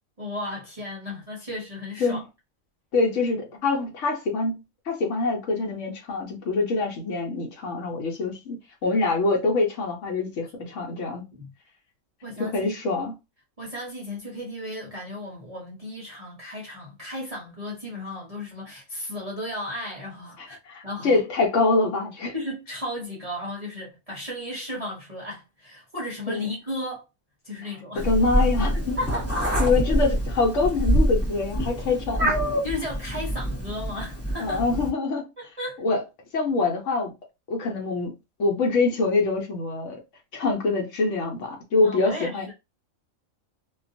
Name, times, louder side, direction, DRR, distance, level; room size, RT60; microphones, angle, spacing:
voice 1, 0.2-2.2 10.6-10.7 11.3-11.5 12.2-12.7 13.6-20.6 20.8-21.2 22.3-27.0 27.4-28.1 29.0-29.5 32.6-34.6 35.4-35.8 41.8-42.5, left 1 dB, 40° right, 0.5 m, -35 dB
voice 2, 2.9-8.6 8.8-11.2 12.4-13.1 20.6-22.3 26.3-26.5 28.0-29.0 29.6-32.3 34.4-35.2 35.8-36.0 36.3-37.1 37.5-38.1 38.4-40.0 40.3-42.5, left 3 dB, 65° left, 1.0 m, -25 dB
Meow, 28.0-34.9, equal, 10° right, 0.9 m, -25 dB
2.4 x 2.2 x 2.6 m
omnidirectional pair, 1.5 m